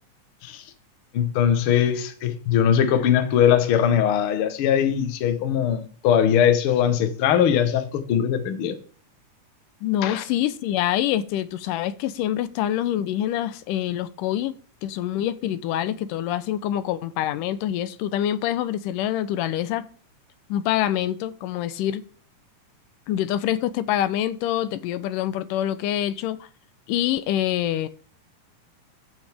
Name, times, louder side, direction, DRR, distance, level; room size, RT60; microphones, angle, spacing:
voice 1, 1.1-8.8 10.0-10.2, left 9 dB, 60° left, 1.5 m, -21 dB
voice 2, 9.8-14.5 14.8-19.8 20.5-22.0 23.1-26.4 26.9-27.9, left 12 dB, 90° left, 2.3 m, -25 dB
14.5 x 6.4 x 3.5 m
omnidirectional pair, 3.7 m